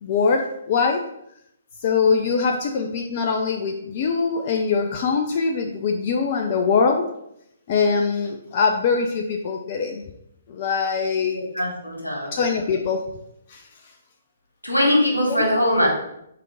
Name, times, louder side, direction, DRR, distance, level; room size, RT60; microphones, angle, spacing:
voice 1, 0.0-1.1 1.8-7.0 7.7-10.0 10.5-11.4 12.3-13.1 13.5-13.6 15.4-15.5, left 5 dB, 40° left, 4 dB, 0.6 m, -22 dB
voice 2, 11.5-12.3 14.6-15.9, left 1 dB, 85° left, -2 dB, 2.2 m, -21 dB
4.8 x 4.4 x 5.1 m, 0.78 s
figure-of-eight pair, 130°, 0 cm